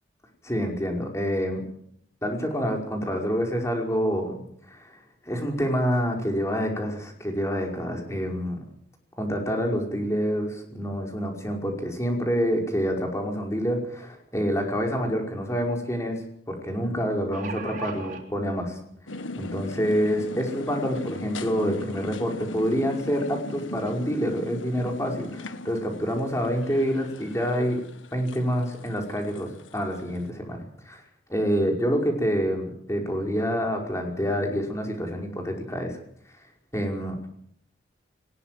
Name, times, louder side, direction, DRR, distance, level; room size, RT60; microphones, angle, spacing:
voice 1, 0.4-1.6 2.2-4.4 4.7-5.0 5.3-8.6 9.2-18.8 19.4-27.8 28.1-31.0 31.3-36.0 36.7-37.2, equal, 15° left, 2 dB, 5.3 m, -27 dB
sound 1, 14.9-15.0 15.3-15.4 17.0-18.2 19.1-19.2 19.6-19.7, right 4 dB, 40° right, 3.6 m, -37 dB
sound 2, 19.1-30.1, left 2 dB, 85° left, 1.4 m, -38 dB
22.0 x 20.5 x 7.7 m, 0.68 s
head